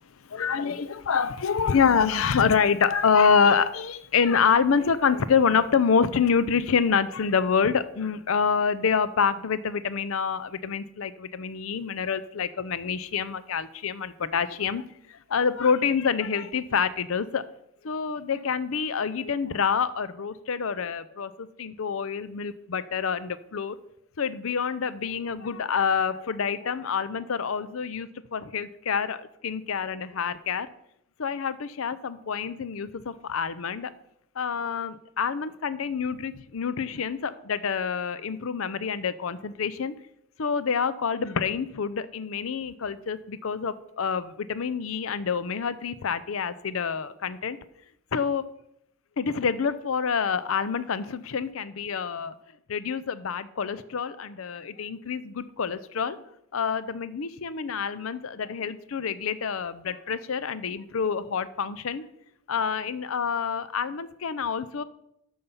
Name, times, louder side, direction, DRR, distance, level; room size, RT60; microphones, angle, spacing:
voice 1, 0.3-14.8 15.3-17.4 17.8-23.7 24.2-30.7 31.2-33.9 34.4-39.9 40.4-47.6 48.1-48.4 49.2-52.3 52.7-56.2 56.5-62.0 62.5-64.8, left 6 dB, 65° left, 14 dB, 0.5 m, -27 dB
12.5 x 5.5 x 7.1 m, 0.76 s
head